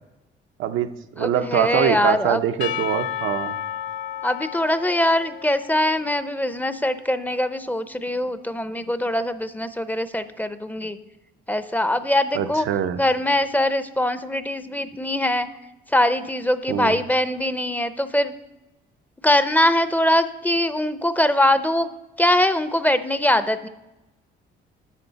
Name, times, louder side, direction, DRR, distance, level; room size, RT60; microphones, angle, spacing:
voice 1, 0.6-3.6 12.3-13.0 16.7-17.0, right 9 dB, 80° right, 8 dB, 0.6 m, -24 dB
voice 2, 1.2-2.4 4.2-11.0 11.5-12.7 13.0-15.5 15.9-18.3 19.2-21.9 22.2-23.7, left 1 dB, 10° left, 12 dB, 0.5 m, -22 dB
Percussion / Church bell, 2.6-6.9, left 10 dB, 85° left, 0.4 m, -33 dB
11.5 x 7.0 x 4.0 m, 0.97 s
cardioid pair, 90°, 20 cm